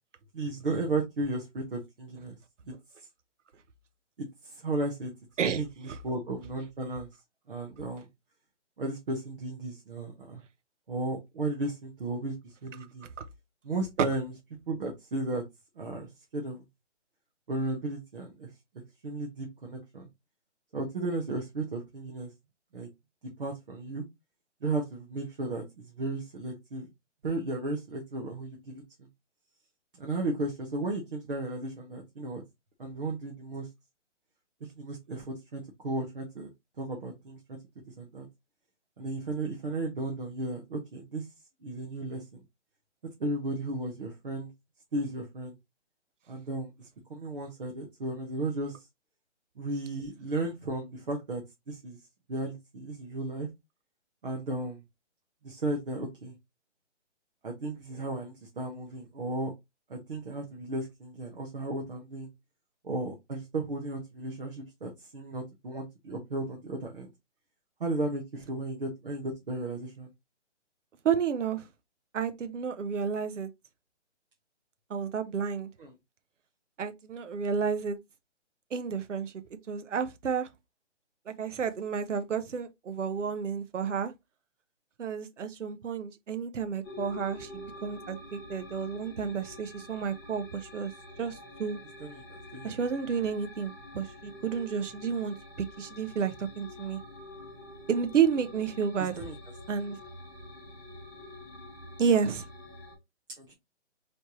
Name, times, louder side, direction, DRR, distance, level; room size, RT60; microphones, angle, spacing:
voice 1, 0.3-2.4 2.7-2.8 4.2-5.1 5.4-7.1 7.5-8.1 8.8-10.4 10.9-13.1 13.6-14.3 14.7-15.4 15.8-16.6 17.5-18.5 19.0-20.1 20.7-22.3 22.7-22.9 23.4-24.0 24.6-26.9 27.2-28.8 29.9-32.4 32.8-33.7 34.8-36.5 36.8-37.6 37.9-38.3 39.0-41.3 41.6-42.4 43.2-44.5 44.9-45.6 46.3-48.9 49.6-51.4 51.7-52.0 52.3-53.5 54.2-54.8 55.4-56.3 57.4-59.5 59.9-62.3 62.8-67.1 67.8-70.1 75.8-75.9 92.0-92.2 92.5-92.8 99.0-99.4 99.9-100.0 103.4-103.5, right 2 dB, 50° right, 1.1 m, -34 dB
voice 2, 71.0-71.6 72.1-73.5 74.9-75.7 76.8-78.0 78.7-79.3 79.7-80.5 81.3-84.1 85.0-90.9 91.2-91.8 92.6-97.0 97.9-99.1 99.7-100.0 102.0-102.4, right 6 dB, 80° right, 0.9 m, -31 dB
sound 1, 86.8-102.9, left 1 dB, 15° left, 1.0 m, -47 dB
4.3 x 3.3 x 3.0 m
hypercardioid pair, 175°, 36 cm